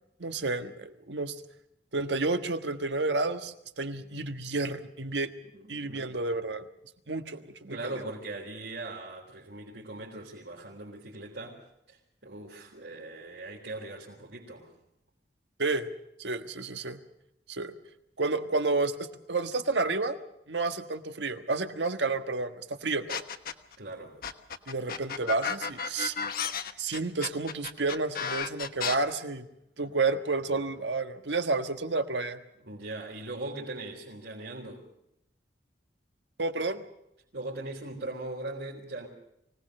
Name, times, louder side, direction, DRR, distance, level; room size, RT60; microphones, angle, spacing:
voice 1, 0.2-1.3 1.9-5.3 5.7-6.7 7.1-7.8 15.6-15.9 16.2-17.0 17.5-17.7 18.2-20.2 20.5-23.2 24.7-26.1 26.8-29.5 29.8-32.4 36.4-36.8, right 3 dB, 90° right, 8 dB, 1.5 m, -30 dB
voice 2, 5.5-6.1 7.7-14.7 23.8-24.2 32.6-34.9 37.3-39.1, right 2 dB, 70° right, -5 dB, 3.9 m, -40 dB
sound 1, 23.1-23.7 24.2-28.9, left 6 dB, 55° left, 1.2 m, -33 dB
24.5 x 18.0 x 6.6 m, 0.81 s
head